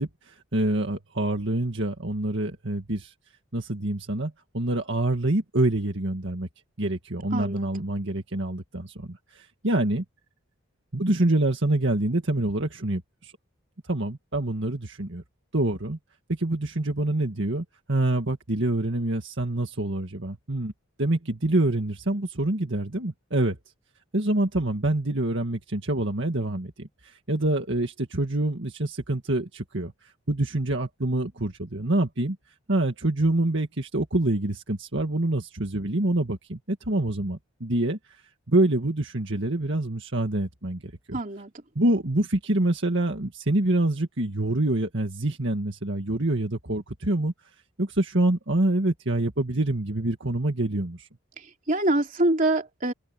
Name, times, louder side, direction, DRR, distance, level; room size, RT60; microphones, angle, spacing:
voice 1, 0.0-3.1 3.5-6.5 6.8-10.0 10.9-13.3 13.8-15.2 15.5-16.0 16.3-20.7 21.0-23.6 24.1-32.4 32.7-38.2 38.5-41.2 41.8-47.3 47.8-51.1, right 1 dB, 55° right, 1.9 m, -26 dB
voice 2, 7.3-7.7 41.1-41.5 51.4-52.9, right 2 dB, 40° right, 3.2 m, -25 dB
open air
head